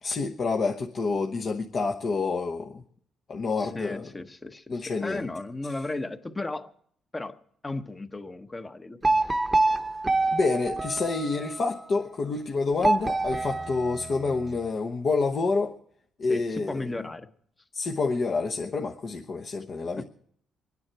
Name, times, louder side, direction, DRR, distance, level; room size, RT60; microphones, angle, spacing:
voice 1, 0.0-2.8 3.3-4.1 4.7-5.3 10.3-15.7 16.2-16.8 17.7-20.0, left 4 dB, 50° left, 1 dB, 1.1 m, -28 dB
voice 2, 3.6-6.7 7.1-7.4 7.6-9.4 16.3-17.3 19.9-20.0, left 2 dB, 20° left, 9 dB, 1.0 m, -35 dB
sound 1, 9.0-11.7 12.8-14.6, right 2 dB, 15° right, 0.9 m, -26 dB
25.0 x 9.7 x 4.6 m, 0.63 s
cardioid pair, 90°, 0 cm